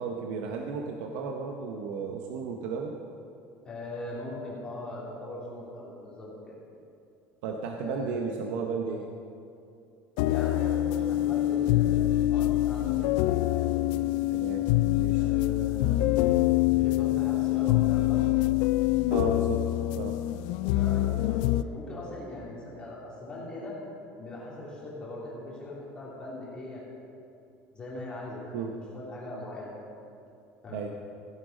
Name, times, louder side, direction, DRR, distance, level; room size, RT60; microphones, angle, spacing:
voice 1, 0.0-3.0 7.4-9.1 13.8-15.2 19.1-19.7 19.9-20.2 28.5-28.7 30.7-30.9, right 5 dB, 85° right, 2 dB, 1.0 m, -34 dB
voice 2, 3.6-6.5 7.7-8.2 10.2-13.2 13.5-13.7 15.2-16.0 16.7-18.3 20.7-23.8 24.2-26.9 27.7-28.7 28.9-29.7 30.6-30.9, left 1 dB, 20° left, -6 dB, 2.7 m, -40 dB
sound 1, 10.2-21.6, left 16 dB, 75° left, 0.3 m, -25 dB
16.0 x 10.0 x 5.2 m, 2.6 s
cardioid pair, 175°, 5 cm